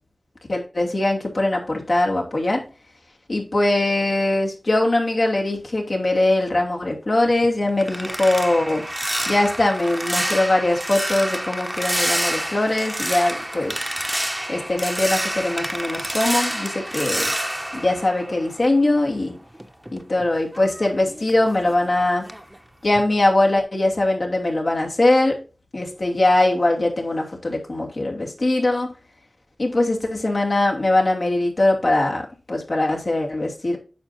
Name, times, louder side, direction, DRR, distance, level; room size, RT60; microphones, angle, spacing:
voice 1, 0.5-2.6 3.3-8.9 9.3-13.7 14.5-17.3 17.7-19.3 19.9-22.2 22.8-25.4 25.7-28.9 29.6-33.8, left 2 dB, 70° left, -1 dB, 2.8 m, -21 dB
sound 1, 7.3-18.9 19.3-21.9 22.3-22.6 23.0-23.2, right 1 dB, 15° right, 1.0 m, -28 dB
9.3 x 6.2 x 2.7 m, 0.33 s
cardioid pair, 40°, 0 cm